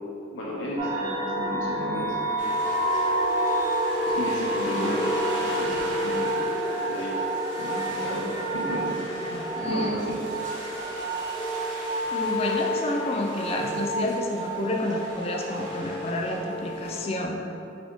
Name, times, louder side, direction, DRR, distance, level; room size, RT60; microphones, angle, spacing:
voice 1, 0.3-2.2 4.1-6.4 6.8-7.1 7.6-8.3 8.5-9.4 9.7-10.2 13.6-13.7, left 1 dB, 90° left, -5 dB, 0.7 m, -33 dB
sound 1, 0.8-17.2, right 1 dB, 25° right, 0.6 m, -29 dB
sound 2, 2.4-17.0, right 1 dB, 75° right, 1.0 m, -41 dB
voice 2, 9.6-10.0 12.1-17.4, left 1 dB, 30° left, 0 dB, 0.4 m, -29 dB
4.1 x 3.5 x 3.1 m, 2.8 s
head